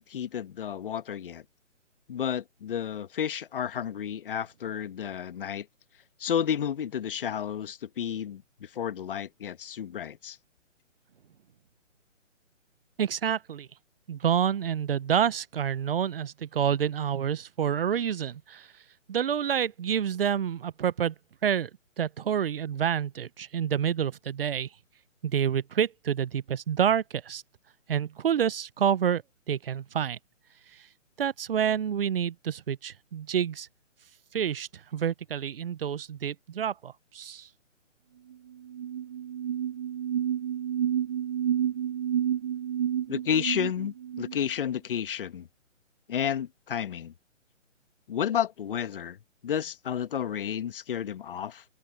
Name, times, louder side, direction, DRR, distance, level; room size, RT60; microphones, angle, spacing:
voice 1, 0.0-1.4 2.1-5.7 6.2-10.4 43.1-45.5 46.1-47.1 48.1-49.2 49.4-51.6, left 9 dB, 45° left, 1.5 m, -31 dB
voice 2, 13.0-13.7 14.1-18.7 19.1-21.1 21.4-21.7 22.0-24.7 25.2-27.4 27.9-29.2 29.5-30.2 31.2-33.7 34.3-37.5, right 8 dB, 50° right, 0.9 m, -28 dB
sound 1, 38.3-38.4 38.6-44.4, right 10 dB, 20° right, 0.6 m, -30 dB
figure-of-eight pair, 150°, 38 cm